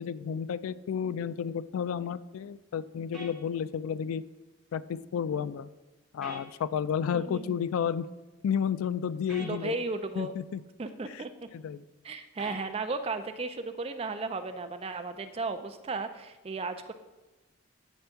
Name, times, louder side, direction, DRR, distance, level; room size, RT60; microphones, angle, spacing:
voice 1, 0.0-4.2 4.7-5.7 6.1-8.1 8.4-9.8 10.2-10.6 11.1-11.2 11.5-11.8, left 7 dB, 75° left, 16 dB, 0.3 m, -31 dB
sound 1, 3.1-3.3 6.2-6.4 9.3-9.5 12.4-12.6, right 1 dB, ahead, 1.3 m, -43 dB
voice 2, 7.1-7.6 9.4-10.3 10.8-11.3 12.0-16.9, right 3 dB, 25° right, 8 dB, 0.4 m, -35 dB
9.1 x 3.4 x 5.6 m, 1.1 s
head